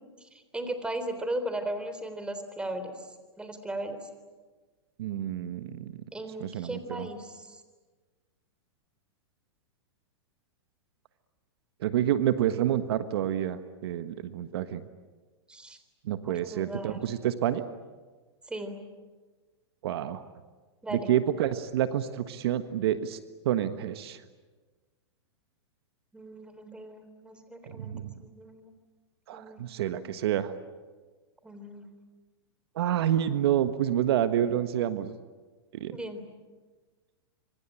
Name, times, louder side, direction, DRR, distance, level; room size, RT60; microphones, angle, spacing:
voice 1, 0.2-3.1 3.4-4.0 6.1-7.6 15.5-15.8 16.2-17.0 18.5-18.8 20.8-21.1 26.1-27.9 28.2-28.7 29.3-29.6 30.0-30.1 31.4-31.9 35.9-36.2, right 1 dB, 5° right, 9 dB, 3.7 m, -37 dB
voice 2, 5.0-6.0 6.4-7.1 11.8-14.8 16.0-17.6 19.8-20.2 20.9-23.2 23.4-24.2 27.7-28.1 29.3-30.5 32.7-35.1 35.7-36.0, right 11 dB, 65° right, 10 dB, 1.5 m, -28 dB
26.0 x 25.5 x 9.0 m, 1.4 s
hypercardioid pair, 120°, 14 cm